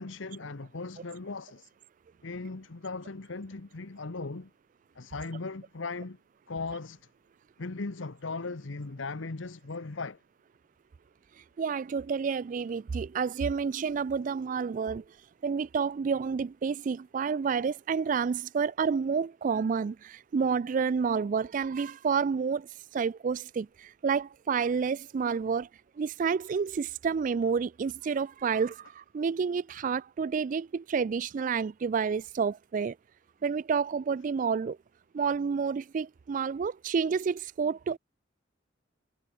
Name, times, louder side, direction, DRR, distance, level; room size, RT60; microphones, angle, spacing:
voice 1, 0.0-1.7 2.2-4.5 4.9-6.2 6.5-7.1 7.6-10.2, left 3 dB, 80° left, 1.0 m, -38 dB
voice 2, 11.6-15.0 15.4-22.7 22.9-25.7 26.0-33.0 33.4-34.8 35.1-38.0, right 6 dB, 40° right, 0.3 m, -29 dB
head